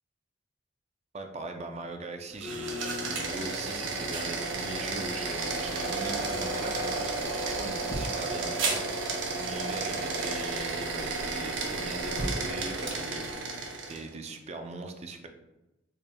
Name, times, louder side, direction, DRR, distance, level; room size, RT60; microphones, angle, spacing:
voice 1, 1.1-13.6 13.9-15.3, right 2 dB, 35° right, 5 dB, 0.4 m, -40 dB
sound 1, 2.3-14.1, right 3 dB, 75° right, 0.7 m, -32 dB
sound 2, 5.5-13.4, right 1 dB, 80° left, 1.2 m, -44 dB
4.4 x 3.3 x 2.2 m, 0.98 s
head